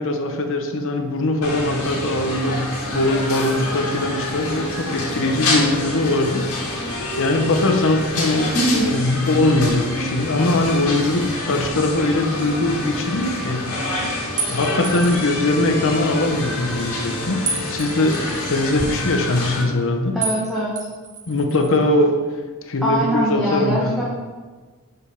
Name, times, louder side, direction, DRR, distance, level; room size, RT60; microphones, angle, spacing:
voice 1, 0.0-6.6 7.2-13.8 14.5-20.2 21.3-22.2 22.7-24.0, left 2 dB, 60° left, 5 dB, 0.8 m, -21 dB
sound 1, 1.4-19.6, left 1 dB, 80° left, 2.0 m, -27 dB
voice 2, 8.5-9.0 20.1-20.7 22.8-24.0, right 1 dB, ahead, -7 dB, 1.2 m, -22 dB
sound 2, 14.4-15.3 17.5-18.4 20.2-20.4 20.8-21.7, right 4 dB, 35° right, 1.4 m, -29 dB
6.5 x 5.2 x 5.7 m, 1.4 s
head